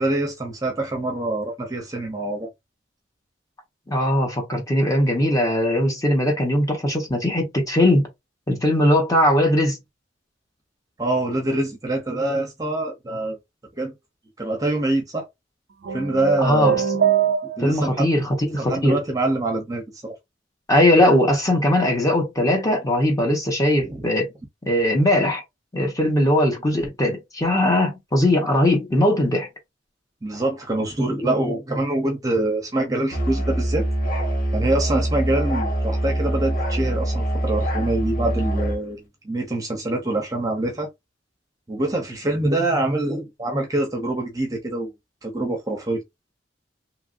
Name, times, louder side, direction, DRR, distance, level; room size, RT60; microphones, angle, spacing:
voice 1, 0.0-2.5 11.0-13.4 13.8-13.9 14.4-15.3 15.9-16.8 17.6-18.1 18.6-20.1 23.8-24.1 30.2-33.9 34.5-40.9 41.7-44.9 45.2-46.0, right 2 dB, 20° right, 0.7 m, -25 dB
voice 2, 3.9-8.1 8.5-9.8 16.4-16.8 17.6-19.0 20.7-24.3 24.7-25.4 25.7-29.5, left 1 dB, 20° left, 1.0 m, -20 dB
sound 1, 15.8-17.9, right 9 dB, 65° right, 0.4 m, -22 dB
Musical instrument, 33.1-38.8, right 1 dB, 50° left, 1.2 m, -24 dB
2.9 x 2.6 x 2.5 m
head